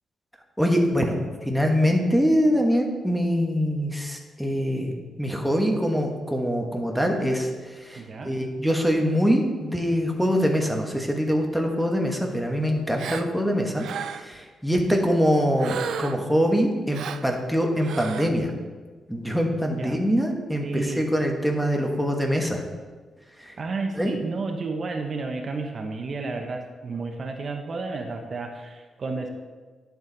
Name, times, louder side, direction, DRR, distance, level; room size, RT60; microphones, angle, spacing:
voice 1, 0.6-1.2 1.4-13.9 14.1-18.5 19.1-22.7 23.4-23.5 24.0-24.2, equal, ahead, 1 dB, 1.3 m, -24 dB
voice 2, 8.0-8.3 19.7-20.0 20.6-21.0 23.6-29.3, right 3 dB, 45° right, 4 dB, 0.9 m, -31 dB
Gasp, 13.0-13.3 13.8-14.4 15.6-16.3 16.9-17.3 17.8-18.3, right 7 dB, 80° right, 0.4 m, -33 dB
10.5 x 7.1 x 4.0 m, 1.4 s
cardioid pair, 110°, 0 cm